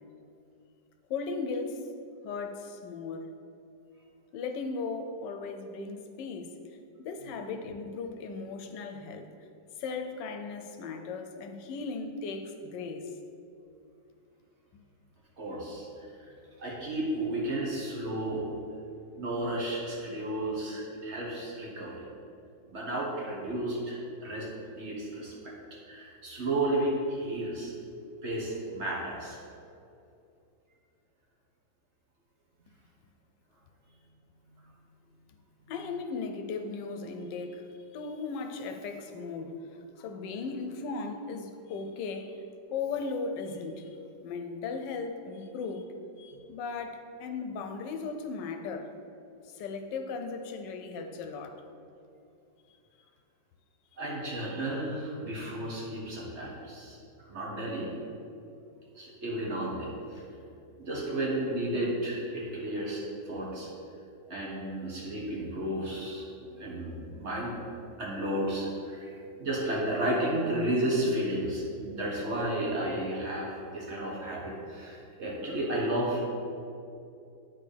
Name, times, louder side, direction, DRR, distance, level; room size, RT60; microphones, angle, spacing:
voice 1, 1.1-1.9 2.2-3.3 4.3-6.5 7.0-9.3 9.8-13.1 35.7-42.4 42.7-45.9 46.2-48.9 49.4-51.6, left 4 dB, 80° left, 6 dB, 1.2 m, -37 dB
voice 2, 15.4-16.3 16.6-18.5 19.2-22.1 22.7-25.5 25.9-27.7 28.2-29.4 54.0-57.0 57.2-57.9 58.9-60.2 60.8-63.7 64.3-67.6 68.0-69.1 69.4-76.3, right 1 dB, 45° right, -4 dB, 1.4 m, -33 dB
9.7 x 4.0 x 3.3 m, 2.6 s
omnidirectional pair, 1.9 m